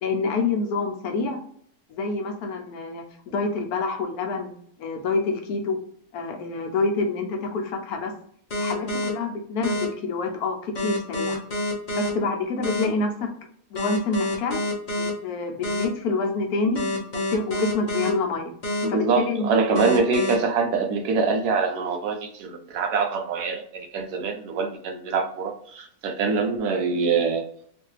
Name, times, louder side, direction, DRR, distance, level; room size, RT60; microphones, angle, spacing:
voice 1, 0.0-1.4 1.9-4.5 4.8-5.8 6.1-8.1 8.5-11.4 12.0-13.3 13.7-14.6 15.0-16.9 17.1-18.5 18.9-19.8, left 3 dB, 75° left, 3 dB, 1.1 m, -27 dB
sound 1, 8.5-9.1 9.6-9.8 10.7-12.1 12.6-12.8 13.7-15.1 15.6-15.8 16.7-18.1 18.6-18.8 19.7-20.3, left 1 dB, 50° left, 0.5 m, -27 dB
voice 2, 18.8-27.4, right 4 dB, 75° right, 5 dB, 1.1 m, -24 dB
3.1 x 2.5 x 3.1 m, 0.62 s
omnidirectional pair, 1.7 m